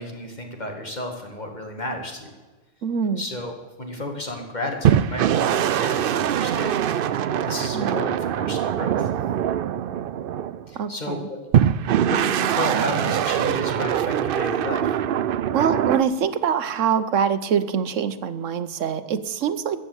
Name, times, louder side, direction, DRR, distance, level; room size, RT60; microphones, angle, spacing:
voice 1, 0.0-2.3 3.2-3.5 3.8-6.8 7.1-9.1 10.7-11.4 12.1-14.9, left 1 dB, 35° left, 3 dB, 2.2 m, -32 dB
voice 2, 2.8-3.2 7.7-8.0 10.8-11.3 15.5-19.8, right 7 dB, 85° right, 12 dB, 1.2 m, -24 dB
sound 1, 4.8-10.7 11.5-16.0, right 9 dB, 60° right, 0.6 m, -23 dB
15.0 x 7.8 x 8.1 m, 1.3 s
omnidirectional pair, 1.3 m